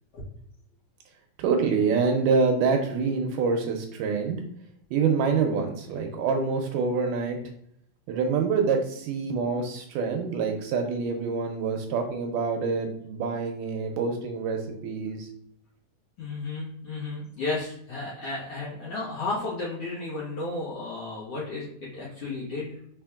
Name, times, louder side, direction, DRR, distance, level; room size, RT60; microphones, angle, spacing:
voice 1, 1.4-4.4 4.9-7.4 8.1-15.3, right 5 dB, 80° right, 4 dB, 2.0 m, -26 dB
voice 2, 16.2-22.7, left 3 dB, 60° left, -7 dB, 1.7 m, -33 dB
4.6 x 4.3 x 2.3 m, 0.71 s
omnidirectional pair, 4.0 m